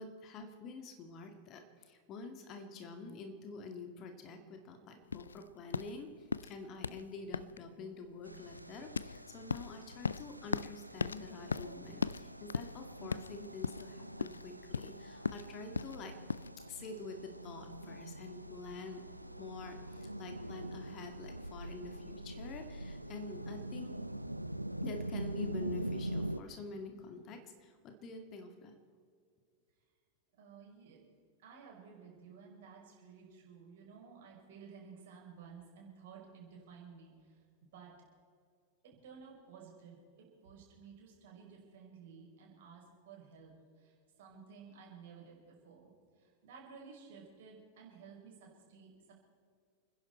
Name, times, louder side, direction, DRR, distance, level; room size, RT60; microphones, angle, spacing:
voice 1, 0.0-16.1 16.7-19.0 19.4-23.9 24.8-28.7, left 3 dB, 35° left, 6 dB, 2.0 m, -47 dB
sound 1, 5.1-16.5, left 5 dB, 75° left, 0.3 m, -39 dB
sound 2, 8.2-26.4, right 1 dB, 90° right, 0.5 m, -44 dB
voice 2, 30.4-31.0 31.4-37.9 38.8-45.9 46.2-49.1, right 6 dB, 55° right, -2 dB, 5.5 m, -54 dB
29.5 x 10.5 x 4.4 m, 2.2 s
figure-of-eight pair, 90°, 0 cm